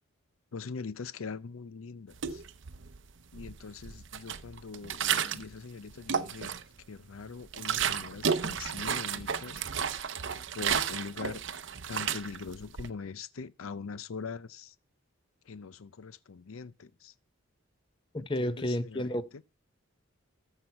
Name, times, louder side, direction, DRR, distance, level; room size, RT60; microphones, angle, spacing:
voice 1, 0.5-2.4 3.3-5.1 5.3-6.6 6.9-9.6 10.5-11.4 11.9-14.7 15.5-17.1 18.2-19.4, left 5 dB, 85° left, 0.6 m, -42 dB
sound 1, 2.1-3.0 3.3-5.6 5.9-6.8 7.2-12.9, right 7 dB, 60° right, 0.7 m, -33 dB
voice 2, 18.3-19.2, left 1 dB, 25° left, 0.7 m, -31 dB
14.0 x 5.7 x 5.7 m
head